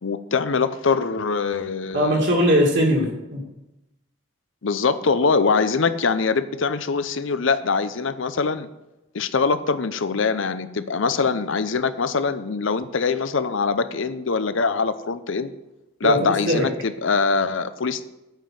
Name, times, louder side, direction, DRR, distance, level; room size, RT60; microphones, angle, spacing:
voice 1, 0.0-2.2 4.6-8.7 9.1-15.5 16.0-18.1, left 4 dB, 65° left, 12 dB, 0.6 m, -23 dB
voice 2, 1.9-3.4 16.0-16.7, equal, 55° right, -1 dB, 2.2 m, -20 dB
9.1 x 5.2 x 7.5 m, 0.95 s
head